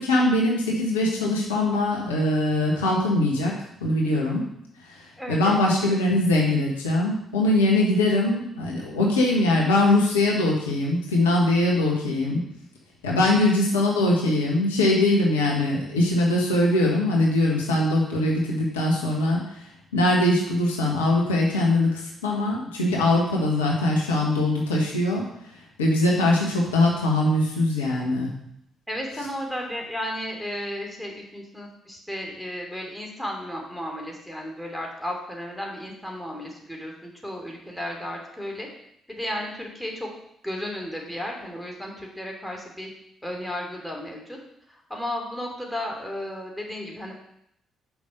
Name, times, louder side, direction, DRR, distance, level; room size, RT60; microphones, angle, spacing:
voice 1, 0.0-3.5 3.8-4.4 5.3-12.4 13.0-19.4 19.9-25.2 25.8-28.3, left 1 dB, 90° left, -2 dB, 1.3 m, -22 dB
voice 2, 5.2-6.0 13.3-13.5 28.9-38.7 39.1-40.1 40.4-42.9 43.2-44.4 44.7-47.1, left 1 dB, 5° left, 0 dB, 2.8 m, -34 dB
6.1 x 5.3 x 6.5 m, 0.75 s
hypercardioid pair, 45°, 0 cm